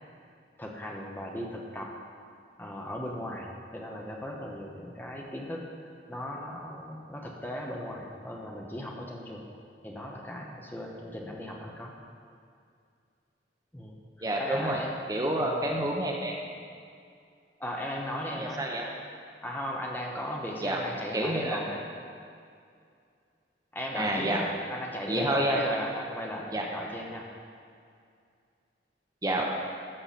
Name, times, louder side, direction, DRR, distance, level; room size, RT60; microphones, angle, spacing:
voice 1, 0.6-1.9 2.6-9.4 9.8-11.9 13.7-14.9 15.4-15.6 17.6-18.7 19.4-21.8 23.7-27.3, equal, 10° left, -1 dB, 0.9 m, -37 dB
voice 2, 14.2-14.8 15.1-16.4 18.4-18.9 20.6-20.8 21.1-21.6 23.9-24.4 25.1-25.6 26.5-26.6 29.2-29.4, right 1 dB, 20° right, -1 dB, 0.9 m, -28 dB
14.0 x 6.7 x 4.2 m, 2.3 s
head